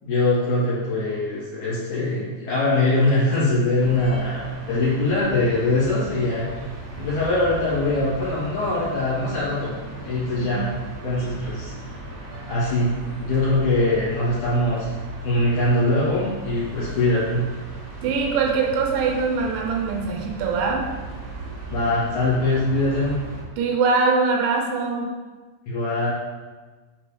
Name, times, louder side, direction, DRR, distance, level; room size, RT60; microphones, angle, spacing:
voice 1, 0.0-6.5 7.0-9.7 10.0-10.7 11.0-11.7 12.5-12.9 13.2-14.9 15.2-17.5 21.7-23.2 25.7-26.1, left 2 dB, 45° left, -8 dB, 3.4 m, -22 dB
sound 1, 3.8-23.4, right 1 dB, 55° right, 1.8 m, -37 dB
voice 2, 18.0-20.8 23.6-25.1, right 4 dB, 75° right, 1 dB, 3.2 m, -22 dB
6.7 x 5.2 x 5.2 m, 1.3 s
omnidirectional pair, 5.8 m